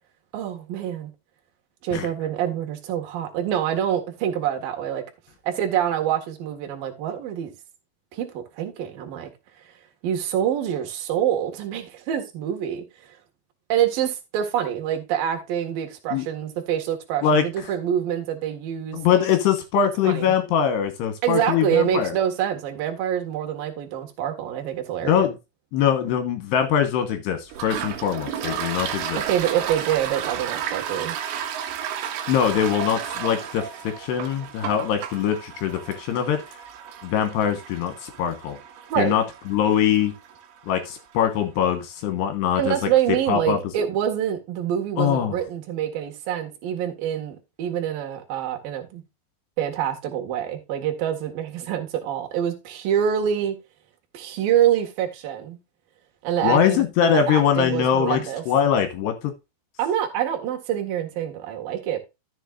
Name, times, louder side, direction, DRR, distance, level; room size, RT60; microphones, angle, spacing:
voice 1, 0.3-1.1 1.8-5.0 5.4-7.5 8.1-9.3 10.0-12.8 13.7-19.2 20.0-20.3 21.2-25.3 29.2-31.2 38.9-39.1 42.6-49.0 49.6-53.6 54.1-55.6 56.2-58.4 59.8-62.0, right 10 dB, 60° right, 3.1 m, -26 dB
voice 2, 18.9-22.1 25.0-25.3 25.7-29.2 32.3-33.6 34.0-36.4 37.0-38.6 39.0-39.2 39.5-40.1 40.7-42.9 43.3-43.6 45.0-45.4 56.4-59.3, left 8 dB, 70° left, 3.0 m, -22 dB
Toilet flush, 27.5-40.9, right 9 dB, 75° right, 3.3 m, -33 dB
13.5 x 7.1 x 2.5 m
omnidirectional pair, 5.5 m